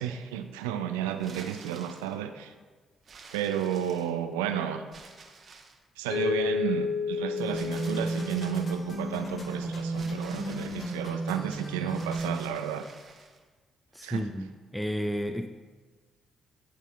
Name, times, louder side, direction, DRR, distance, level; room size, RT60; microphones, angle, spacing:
voice 1, 0.0-2.5 3.3-4.8 6.0-12.8 14.0-14.2, right 9 dB, 80° right, 8 dB, 0.3 m, -32 dB
sound 1, 1.2-2.2 3.1-4.3 4.9-5.9 7.5-8.7 9.9-11.1 11.9-13.4, right 4 dB, 50° right, 0.9 m, -50 dB
Mallet percussion, 6.1-9.0, left 6 dB, 70° left, 0.5 m, -31 dB
sound 2, 7.4-12.4, right 2 dB, 55° left, 1.6 m, -33 dB
voice 2, 13.9-15.5, equal, 5° left, 6 dB, 0.4 m, -32 dB
12.0 x 4.1 x 2.4 m, 1.4 s
hypercardioid pair, 45°, 0 cm